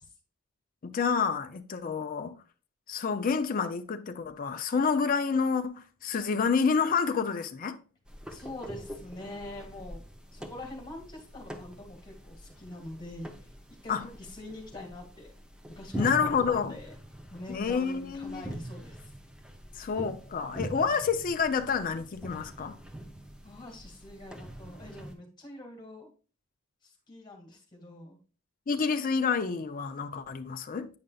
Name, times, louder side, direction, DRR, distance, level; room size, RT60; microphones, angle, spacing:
voice 1, 0.8-2.4 2.9-7.8 13.9-14.0 15.9-16.7 17.5-18.5 19.7-22.8 28.7-30.9, left 5 dB, 40° left, 0.5 m, -28 dB
sound 1, 8.1-25.1, right 1 dB, 5° right, 0.7 m, -44 dB
voice 2, 8.3-10.0 10.3-13.3 13.8-15.3 15.8-16.9 17.3-19.1 23.4-26.1 26.8-28.2, left 1 dB, 20° left, 2.1 m, -44 dB
8.7 x 5.3 x 2.3 m
head